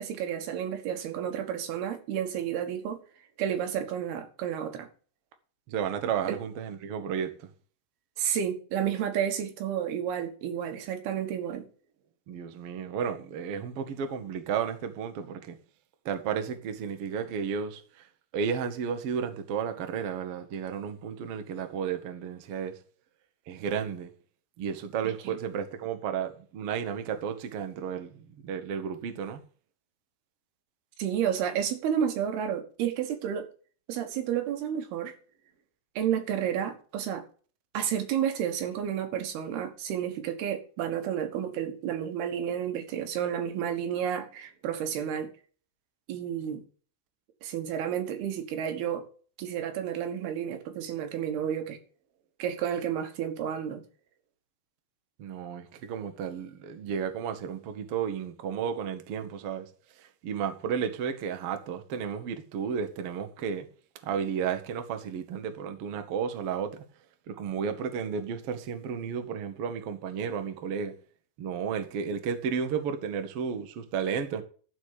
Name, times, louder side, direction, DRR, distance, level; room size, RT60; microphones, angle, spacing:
voice 1, 0.0-3.0 3.4-4.9 6.3-6.4 8.2-11.7 25.2-25.4 31.0-33.5 33.9-35.1 36.0-37.2 37.7-45.3 46.1-46.6 47.4-49.1 49.4-51.8 52.4-53.8, right 9 dB, 85° right, 3.3 m, -31 dB
voice 2, 5.7-7.5 12.3-15.6 16.0-18.1 18.3-22.7 23.5-24.1 24.6-29.4 55.2-59.7 60.0-63.7 64.0-66.8 67.3-70.9 71.4-74.4, right 7 dB, 70° right, 1.4 m, -33 dB
12.5 x 4.7 x 8.2 m
omnidirectional pair, 4.4 m